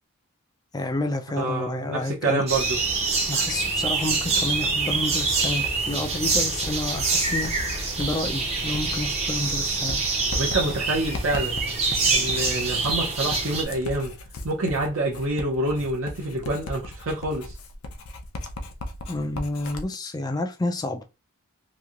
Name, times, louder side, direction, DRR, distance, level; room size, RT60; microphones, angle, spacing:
voice 1, 0.7-2.4 3.3-10.0 19.1-21.0, left 2 dB, 20° left, 0.3 m, -30 dB
voice 2, 1.4-2.8 10.3-11.6 12.1-14.2 14.4-17.5, right 2 dB, 65° right, 0.6 m, -27 dB
sound 1, 2.5-13.6, right 4 dB, 30° right, 0.6 m, -25 dB
Writing, 5.2-19.9, left 2 dB, 80° left, 0.5 m, -37 dB
3.0 x 2.7 x 2.4 m
head